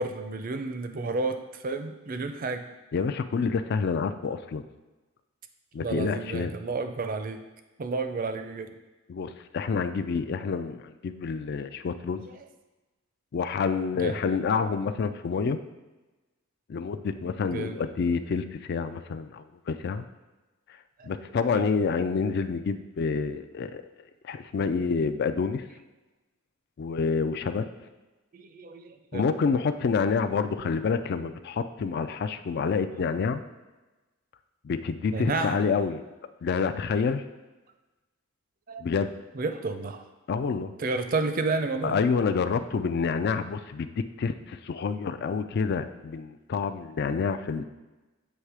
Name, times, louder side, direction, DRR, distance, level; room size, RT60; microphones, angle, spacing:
voice 1, 0.0-2.6 5.8-7.4 7.8-8.8 12.3-12.4 14.0-14.2 17.5-17.8 21.0-21.1 21.5-21.7 28.3-29.3 35.1-35.6 38.7-38.8 39.3-40.0 40.8-42.0, right 3 dB, 45° right, 8 dB, 0.5 m, -31 dB
voice 2, 2.9-4.6 5.7-6.6 9.1-12.2 13.3-15.6 16.7-20.0 21.0-23.8 24.2-25.7 26.8-27.7 29.1-33.4 34.6-36.0 36.4-37.2 38.8-39.1 40.3-40.7 41.8-47.6, left 5 dB, 50° left, 10 dB, 0.3 m, -28 dB
8.0 x 3.2 x 4.7 m, 1.1 s
head